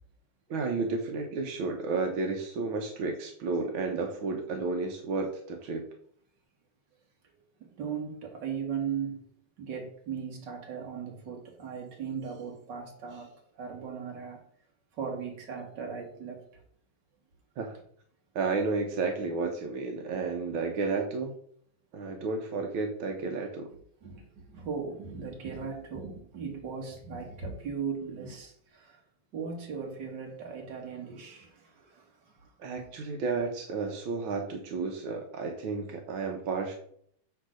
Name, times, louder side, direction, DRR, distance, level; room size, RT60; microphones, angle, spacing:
voice 1, 0.5-5.9 17.6-17.8 18.3-21.4 21.9-23.7 32.6-36.7, right 4 dB, 65° right, 2 dB, 1.3 m, -32 dB
voice 2, 7.6-9.2 9.6-14.4 14.9-16.4 24.0-29.0 29.3-32.1, right 6 dB, 45° right, 2 dB, 1.9 m, -38 dB
8.3 x 3.9 x 6.3 m, 0.63 s
omnidirectional pair, 3.3 m